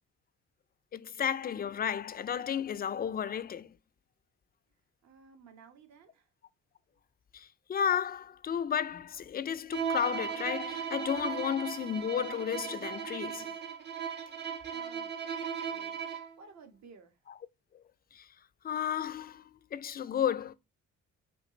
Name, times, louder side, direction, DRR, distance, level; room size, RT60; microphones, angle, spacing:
voice 1, 0.9-3.8 7.3-13.5 18.1-18.3 18.6-20.5, left 8 dB, 30° left, 0.4 m, -33 dB
voice 2, 5.0-6.3 14.7-16.0 16.4-17.2, right 5 dB, 65° right, 1.1 m, -56 dB
Bowed string instrument, 9.7-16.4, right 7 dB, 35° right, 0.5 m, -37 dB
5.0 x 2.5 x 3.0 m
cardioid pair, 90°, 30 cm